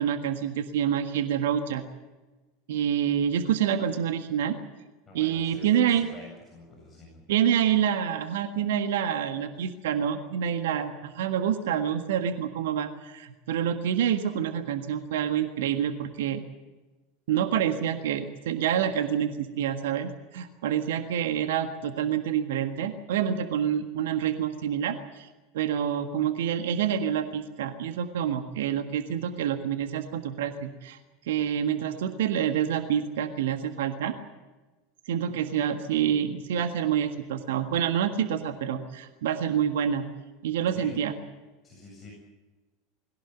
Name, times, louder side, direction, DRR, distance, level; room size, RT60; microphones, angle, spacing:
voice 1, 0.0-1.8 2.7-4.6 5.1-6.1 7.3-16.4 17.3-25.3 25.5-31.0 31.3-34.1 35.1-40.1 40.4-41.1, right 9 dB, 65° right, 8 dB, 1.6 m, -27 dB
voice 2, 5.1-7.2 40.7-40.9 41.6-42.1, left 3 dB, 25° left, -1 dB, 7.8 m, -47 dB
21.5 x 17.5 x 9.4 m, 1.2 s
figure-of-eight pair, 80°, 0 cm